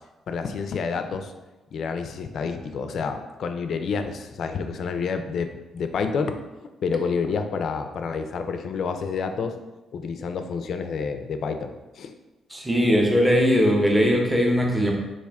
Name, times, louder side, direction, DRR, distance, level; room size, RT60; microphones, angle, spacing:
voice 1, 0.3-1.3 1.7-6.3 6.6-9.6 9.9-12.1, left 5 dB, 60° left, 7 dB, 0.3 m, -29 dB
voice 2, 12.5-14.9, equal, 10° right, 0 dB, 0.6 m, -20 dB
3.5 x 2.5 x 3.3 m, 1.1 s
cardioid pair, 90°, 0 cm